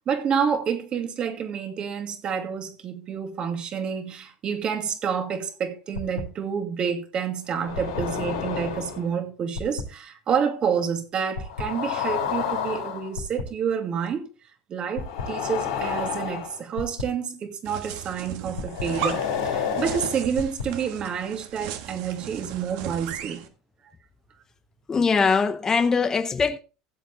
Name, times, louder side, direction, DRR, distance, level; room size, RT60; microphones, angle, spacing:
voice 1, 0.1-14.3 14.7-23.5, right 7 dB, 40° right, 2.3 m, -28 dB
sound 1, 6.0-6.2 7.5-9.1 9.6-9.8 11.4-13.4 15.0-17.0 18.6-20.6, left 7 dB, 90° left, 4.0 m, -29 dB
sound 2, 17.6-23.5, right 9 dB, 65° right, 1.5 m, -36 dB
voice 2, 24.9-26.6, left 5 dB, 25° left, 0.7 m, -22 dB
15.5 x 7.8 x 3.3 m
hypercardioid pair, 90°, 2 cm